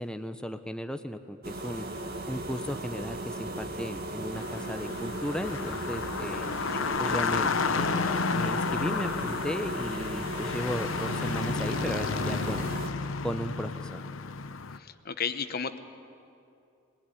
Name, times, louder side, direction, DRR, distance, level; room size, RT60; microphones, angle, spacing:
voice 1, 0.0-1.9 2.3-6.5 7.0-12.7 13.2-14.0, equal, 5° left, 8 dB, 0.7 m, -35 dB
sound 1, 1.4-12.9, right 1 dB, 50° right, 1.8 m, -37 dB
sound 2, 4.4-14.8, left 4 dB, 80° left, 0.8 m, -31 dB
voice 2, 14.8-15.8, left 6 dB, 50° left, 11 dB, 1.0 m, -34 dB
22.0 x 19.5 x 9.9 m, 2.6 s
head